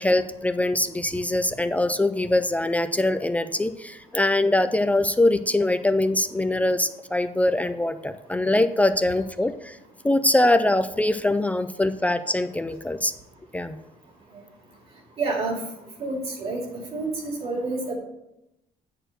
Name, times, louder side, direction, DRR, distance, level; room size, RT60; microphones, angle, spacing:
voice 1, 0.0-9.8 10.0-13.1 13.5-13.8, left 1 dB, 10° left, 10 dB, 0.3 m, -23 dB
voice 2, 15.2-15.6 16.0-16.6 16.9-17.9, right 3 dB, 40° right, 0 dB, 2.5 m, -28 dB
9.9 x 4.5 x 6.4 m, 0.87 s
cardioid pair, 170°, 15 cm